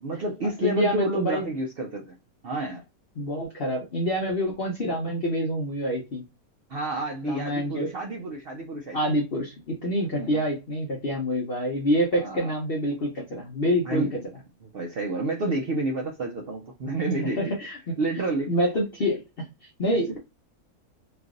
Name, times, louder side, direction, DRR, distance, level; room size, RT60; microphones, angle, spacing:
voice 1, 0.0-2.2 2.4-2.8 6.7-9.0 10.1-10.4 12.1-12.5 13.9-14.1 14.6-17.4 18.0-18.5, right 2 dB, 70° right, 0.5 m, -29 dB
voice 2, 0.6-1.5 3.2-6.2 7.2-7.9 8.9-14.1 17.4-17.8 18.5-19.2 19.8-20.2, equal, 50° left, 0.7 m, -26 dB
3.1 x 2.5 x 2.5 m
omnidirectional pair, 1.6 m